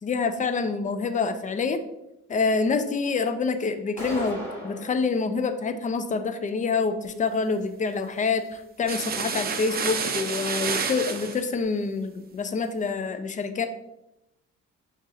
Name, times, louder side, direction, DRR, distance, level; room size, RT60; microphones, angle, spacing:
voice 1, 0.0-1.8 2.3-13.7, left 4 dB, 25° left, 9 dB, 0.4 m, -27 dB
sound 1, 4.0-5.0, equal, 10° left, 1.5 m, -35 dB
sound 2, 8.9-11.4, right 5 dB, 30° right, 0.5 m, -29 dB
6.0 x 2.9 x 2.4 m, 0.87 s
cardioid pair, 90°, 30 cm